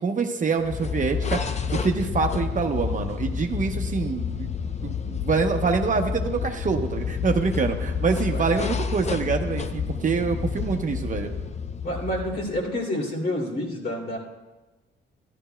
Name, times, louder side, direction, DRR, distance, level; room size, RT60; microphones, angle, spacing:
voice 1, 0.0-1.4 1.7-4.5 4.8-11.3, right 5 dB, 40° right, 5 dB, 0.8 m, -25 dB
sound 1, 0.6-12.8, left 6 dB, 35° left, 0.6 m, -29 dB
voice 2, 11.8-14.2, left 1 dB, 55° left, -2 dB, 2.6 m, -28 dB
13.5 x 11.5 x 2.2 m, 1.1 s
cardioid pair, 90°, 20 cm